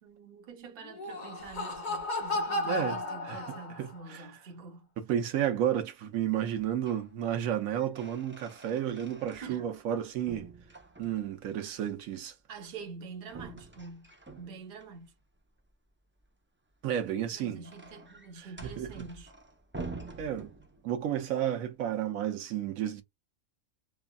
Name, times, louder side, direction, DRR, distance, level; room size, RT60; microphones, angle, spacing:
voice 1, 0.0-4.9 9.4-9.7 12.5-15.1 17.3-19.3, right 4 dB, 50° right, 1.0 m, -46 dB
Laughter, 0.8-4.0, left 2 dB, 40° left, 0.9 m, -34 dB
voice 2, 2.6-3.0 3.2-4.3 5.0-10.5 11.0-12.3 16.8-17.6 18.6-19.0 20.2-20.5 20.8-23.0, right 10 dB, 85° right, 1.1 m, -32 dB
sound 1, 6.5-7.1 7.5-9.9 10.3-11.5 13.3-14.9 16.9-21.1, right 3 dB, 20° right, 0.3 m, -47 dB
3.3 x 2.3 x 2.2 m
omnidirectional pair, 1.4 m